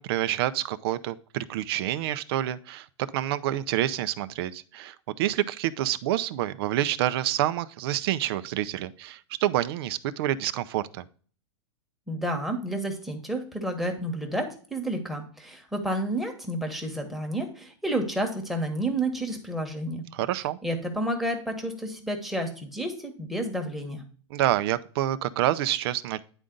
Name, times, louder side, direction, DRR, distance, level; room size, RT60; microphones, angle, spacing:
voice 1, 0.0-2.9 3.1-11.0 20.1-20.6 24.3-26.2, right 13 dB, 55° right, 15 dB, 0.6 m, -28 dB
voice 2, 12.1-20.0 20.6-24.0, right 1 dB, ahead, 2 dB, 1.2 m, -30 dB
9.9 x 3.8 x 3.8 m, 0.42 s
supercardioid pair, 145°, 16 cm